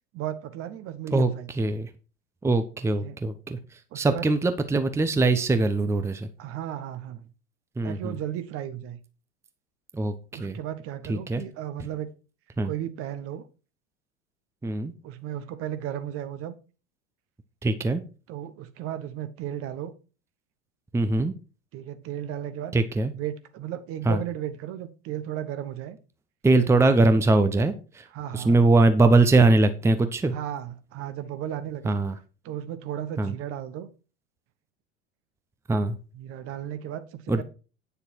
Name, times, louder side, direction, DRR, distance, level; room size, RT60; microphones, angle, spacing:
voice 1, 0.1-1.5 3.0-3.2 3.9-4.2 6.4-7.3 7.8-9.0 10.3-12.1 12.6-13.5 15.0-16.5 18.3-19.9 21.7-22.8 23.1-26.0 28.1-28.6 30.3-31.9 32.4-33.9 36.1-37.4, right 11 dB, 40° right, 1.2 m, -35 dB
voice 2, 1.6-1.9 2.4-3.6 3.9-6.3 7.8-8.1 9.9-10.6 11.1-11.4 12.6-12.7 14.6-14.9 17.6-18.0 20.9-21.3 22.7-23.1 24.1-24.2 26.4-28.1 28.3-30.3 31.8-32.1 33.2-33.3 35.7-36.0 37.3-37.4, right 2 dB, 10° right, 0.8 m, -22 dB
9.6 x 6.8 x 4.6 m
figure-of-eight pair, 75°, 35 cm